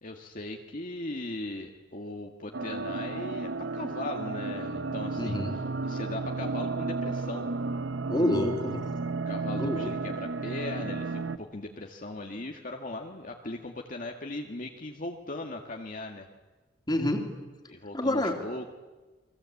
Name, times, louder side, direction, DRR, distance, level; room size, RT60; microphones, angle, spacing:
voice 1, 0.0-7.5 9.3-16.3 17.7-18.7, left 2 dB, 45° left, 2 dB, 1.9 m, -39 dB
sound 1, 2.5-11.4, right 3 dB, 85° right, 1.0 m, -33 dB
voice 2, 5.2-5.5 8.1-8.9 9.6-9.9 16.9-17.3 17.9-18.4, left 1 dB, 25° left, 4 dB, 3.3 m, -28 dB
30.0 x 23.0 x 8.5 m, 1.2 s
head